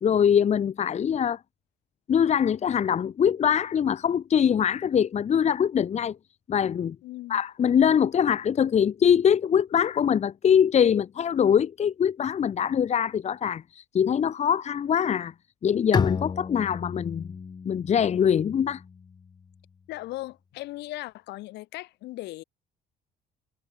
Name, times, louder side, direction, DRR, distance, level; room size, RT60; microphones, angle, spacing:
voice 1, 0.0-1.4 2.1-6.2 6.5-7.0 7.3-15.3 15.6-17.3 17.6-18.8, left 8 dB, 40° left, 1.3 m, -23 dB
voice 2, 7.0-7.4 19.9-22.4, left 18 dB, 85° left, 6.3 m, -38 dB
Bowed string instrument, 15.9-19.5, left 5 dB, 25° left, 0.6 m, -32 dB
cardioid pair, 110°, 17 cm